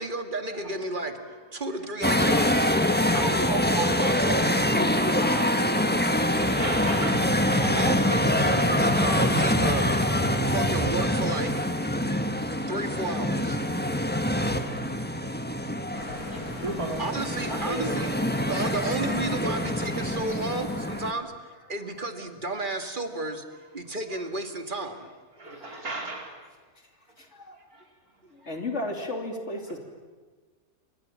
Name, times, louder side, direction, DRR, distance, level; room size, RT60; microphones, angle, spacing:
voice 1, 0.0-1.1 1.5-2.7 3.0-4.7 7.6-9.9 10.4-11.7 12.7-13.6 17.0-18.1 18.5-23.4 23.7-25.1, right 2 dB, 35° right, 6 dB, 2.3 m, -32 dB
voice 2, 1.1-1.8 5.9-7.7 8.6-8.7 11.5-11.6 13.2-13.4 13.6-17.0 17.5-18.5 18.8-18.9 19.4-19.7 23.8-24.3 25.3-26.4 27.1-27.3 27.5-28.6, right 2 dB, 80° right, 1 dB, 4.8 m, -39 dB
sound 1, 2.0-21.1, left 1 dB, 5° left, 1.3 m, -25 dB
voice 3, 5.0-5.9 25.4-25.8 26.8-26.9 27.2-27.6 28.2-29.8, left 2 dB, 50° left, 3 dB, 3.4 m, -36 dB
sound 2, 15.9-21.0, left 2 dB, 75° left, 4.1 m, -41 dB
28.5 x 25.0 x 7.6 m, 1.4 s
omnidirectional pair, 1.5 m